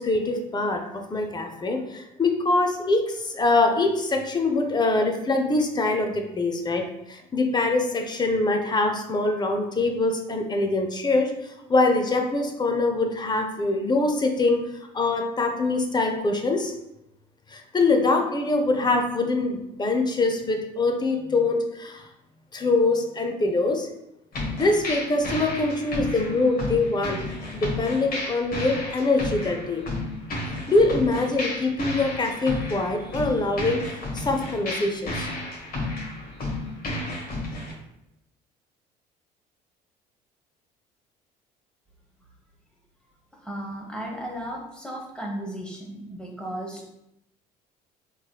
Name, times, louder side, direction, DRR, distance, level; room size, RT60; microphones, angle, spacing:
voice 1, 0.0-14.6 14.9-16.7 17.5-22.1 22.5-23.9 24.5-27.2 27.5-29.8 30.7-33.8 34.1-35.3, left 2 dB, 20° left, 4 dB, 0.6 m, -24 dB
sound 1, 24.3-37.7, left 2 dB, 45° left, 1.3 m, -32 dB
voice 2, 43.4-46.9, right 1 dB, 5° left, -1 dB, 1.1 m, -35 dB
3.7 x 3.1 x 2.3 m, 0.87 s
hypercardioid pair, 60°, 21 cm